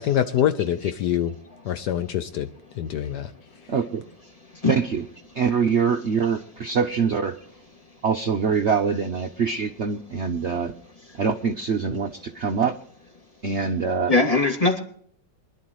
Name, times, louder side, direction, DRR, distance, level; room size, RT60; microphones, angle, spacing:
voice 1, 0.0-1.3 1.6-2.5 2.7-3.3, left 10 dB, 70° left, 10 dB, 1.3 m, -24 dB
voice 2, 3.7-4.0 4.7-5.0 5.3-7.4 8.0-10.7 11.1-12.7 13.4-14.1, right 6 dB, 50° right, 5 dB, 0.8 m, -24 dB
voice 3, 4.4-4.8 6.2-6.3 11.1-11.2 14.1-14.8, left 3 dB, 20° left, 1 dB, 2.7 m, -21 dB
24.5 x 11.5 x 3.1 m, 0.62 s
omnidirectional pair, 1.9 m